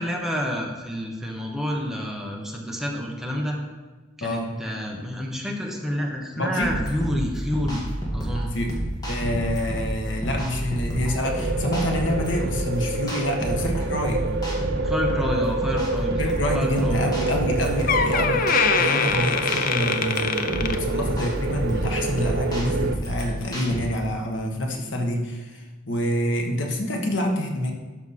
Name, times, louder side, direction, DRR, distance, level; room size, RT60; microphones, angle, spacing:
voice 1, 0.0-3.6 4.2-8.5 10.1-10.2 14.8-17.0 18.0-18.3, equal, ahead, -1 dB, 1.1 m, -29 dB
voice 2, 4.2-4.6 6.3-6.7 8.5-8.8 9.1-14.3 16.2-18.5 18.7-27.7, left 1 dB, 70° left, 2 dB, 1.4 m, -27 dB
sound 1, 6.6-23.8, right 1 dB, 20° left, 1.9 m, -29 dB
sound 2, 11.2-23.0, right 3 dB, 60° right, 0.5 m, -28 dB
Door, 17.4-17.5 17.9-21.4 21.7-22.0 22.7-22.8, left 6 dB, 45° left, 0.6 m, -24 dB
12.0 x 5.6 x 4.2 m, 1.3 s
head